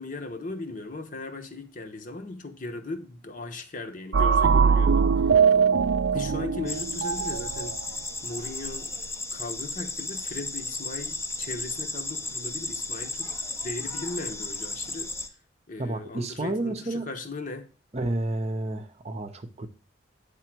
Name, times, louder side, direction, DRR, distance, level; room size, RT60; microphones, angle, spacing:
voice 1, 0.0-5.4 6.1-8.9 9.3-13.3 13.6-15.1 15.7-17.7, left 2 dB, 40° left, 1.0 m, -38 dB
sound 1, 4.1-7.8, right 6 dB, 70° right, 0.4 m, -21 dB
sound 2, 6.7-15.3, left 2 dB, 15° left, 0.7 m, -34 dB
voice 2, 15.8-17.1 17.9-19.7, right 2 dB, 35° right, 0.7 m, -30 dB
9.2 x 3.7 x 6.0 m
head